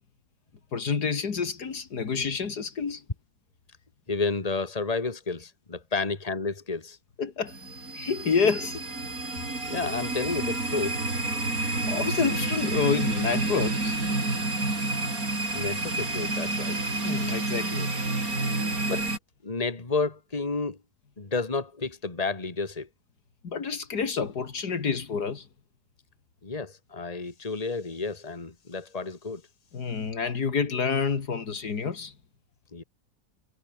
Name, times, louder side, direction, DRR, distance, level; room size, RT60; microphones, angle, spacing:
voice 1, 0.7-3.0 7.2-7.5 7.9-8.8 11.6-14.0 17.0-17.9 23.4-25.5 29.7-32.1, left 5 dB, 85° left, 2.8 m, -28 dB
voice 2, 4.1-7.0 9.7-11.0 15.5-16.8 18.9-19.1 19.4-20.8 21.2-22.9 26.4-29.4 32.7-32.8, left 4 dB, 25° left, 2.3 m, -31 dB
sound 1, 7.5-19.2, right 2 dB, 60° right, 5.6 m, -29 dB
omnidirectional pair, 1.7 m